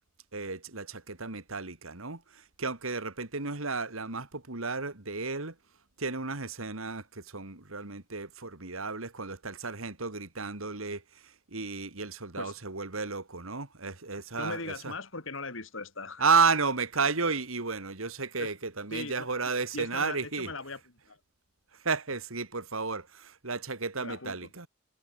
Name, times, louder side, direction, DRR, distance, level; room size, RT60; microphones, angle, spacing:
voice 1, 0.3-5.5 6.0-14.9 16.2-20.5 21.8-24.7, right 4 dB, 85° right, 2.9 m, -32 dB
voice 2, 14.3-16.2 18.4-18.5 18.9-19.3 19.7-20.8 21.1-21.2 24.0-24.5, left 3 dB, 65° left, 3.4 m, -39 dB
head